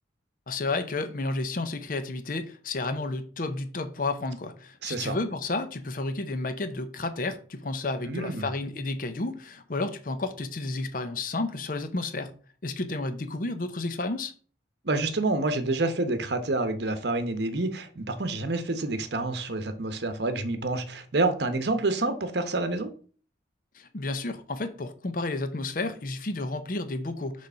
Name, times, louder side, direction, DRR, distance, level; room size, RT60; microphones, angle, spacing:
voice 1, 0.5-12.3 12.6-14.3 23.7-27.5, left 2 dB, 45° left, 0.6 m, -31 dB
voice 2, 4.8-5.1 8.1-8.5 14.8-22.9, right 2 dB, 60° right, 0.9 m, -28 dB
6.6 x 3.3 x 5.5 m
head